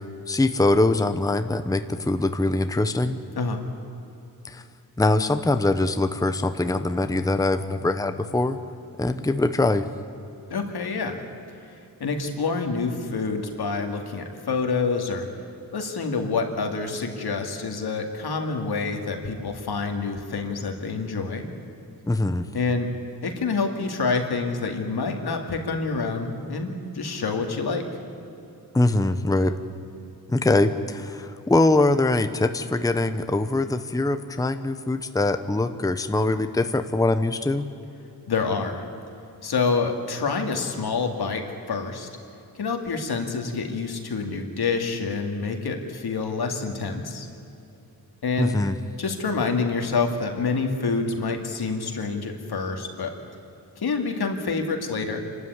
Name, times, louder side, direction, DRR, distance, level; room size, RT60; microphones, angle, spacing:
voice 1, 0.3-3.2 4.4-4.6 5.0-8.6 9.0-9.8 22.1-22.5 28.7-29.6 30.3-37.7 48.4-48.8, left 2 dB, 10° left, 9 dB, 0.8 m, -23 dB
voice 2, 10.5-11.2 11.6-15.3 15.7-21.5 22.5-22.9 23.2-27.9 38.3-38.8 39.4-42.1 42.6-47.3 48.2-48.5 49.0-53.2 53.8-55.2, left 4 dB, 80° left, 4 dB, 2.5 m, -27 dB
27.5 x 13.0 x 9.6 m, 2.9 s
wide cardioid pair, 120°, 38 cm